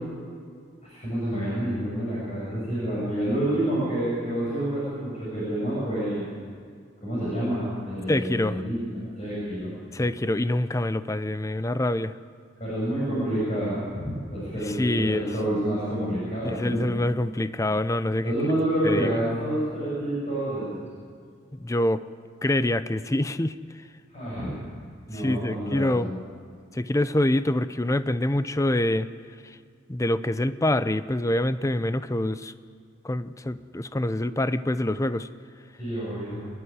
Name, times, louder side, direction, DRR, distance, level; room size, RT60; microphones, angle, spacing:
voice 1, 0.8-6.3 7.0-9.7 12.6-17.0 18.2-20.8 24.1-24.6 25.1-26.2 35.8-36.4, right 1 dB, 35° left, -8 dB, 7.1 m, -28 dB
voice 2, 8.1-8.6 9.9-12.2 14.8-15.3 16.4-18.3 18.8-19.1 21.6-22.0 22.4-23.6 25.1-26.1 26.7-29.1 29.9-32.5 33.0-35.3, left 1 dB, 15° left, 13 dB, 0.5 m, -25 dB
25.0 x 11.5 x 9.6 m, 2.1 s
head